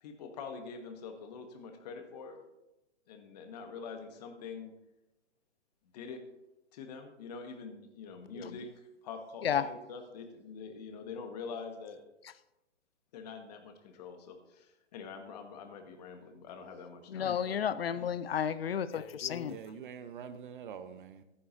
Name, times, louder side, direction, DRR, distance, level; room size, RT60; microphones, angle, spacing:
voice 1, 0.0-2.4 3.1-4.7 5.9-6.2 6.7-12.0 13.1-18.1, left 5 dB, 35° left, 1.4 m, -45 dB
voice 2, 8.3-8.7 9.4-9.7 12.2-12.3 17.1-19.6, left 8 dB, 55° left, 0.6 m, -33 dB
voice 3, 19.5-21.2, right 7 dB, 45° right, 0.9 m, -45 dB
14.0 x 9.8 x 2.6 m
figure-of-eight pair, 125°, 35 cm